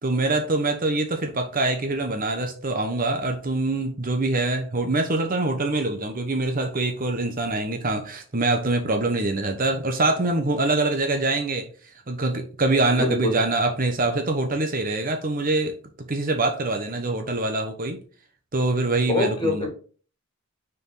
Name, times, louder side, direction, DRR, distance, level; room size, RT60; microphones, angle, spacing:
voice 1, 0.0-11.7 12.1-15.7 16.1-18.0 18.5-19.7, right 2 dB, 40° right, 1.0 m, -24 dB
voice 2, 13.0-13.4 19.1-19.7, left 2 dB, 20° left, 2.2 m, -24 dB
6.3 x 4.7 x 3.8 m
head